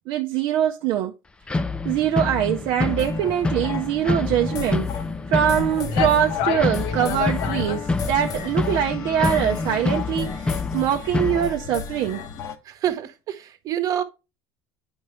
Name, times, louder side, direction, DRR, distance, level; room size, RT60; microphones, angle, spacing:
voice 1, 0.1-1.1 1.8-4.9 5.3-12.2, right 10 dB, 60° right, 0.6 m, -23 dB
sound 1, 1.5-11.5, left 3 dB, 10° left, 0.4 m, -27 dB
sound 2, 2.8-12.6, left 6 dB, 45° left, 0.9 m, -34 dB
sound 3, 5.5-5.6 5.9-7.9, left 11 dB, 70° left, 0.7 m, -29 dB
voice 2, 12.6-14.0, right 10 dB, 40° right, 1.1 m, -27 dB
8.6 x 5.3 x 3.0 m
cardioid pair, 130°, 9 cm